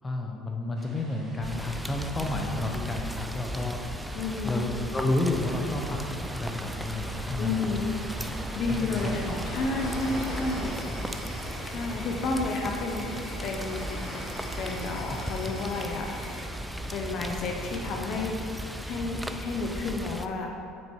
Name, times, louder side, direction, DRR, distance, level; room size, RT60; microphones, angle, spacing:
voice 1, 0.0-6.0 6.3-7.9 8.6-9.7 10.0-10.2 15.1-15.2, left 2 dB, 20° left, 1 dB, 0.8 m, -31 dB
sound 1, 0.8-18.4, right 2 dB, 30° right, 0.9 m, -43 dB
Rain, 1.4-20.3, right 1 dB, 5° right, 0.4 m, -36 dB
voice 2, 4.1-4.7 7.4-7.9 8.6-10.7 11.0-11.1 11.6-14.0 14.6-16.1 16.9-20.5, left 3 dB, 55° left, 2 dB, 0.7 m, -31 dB
Insect, 9.8-16.4, left 2 dB, 75° left, 1.3 m, -43 dB
6.2 x 4.4 x 4.5 m, 2.4 s
supercardioid pair, 85°, 0 cm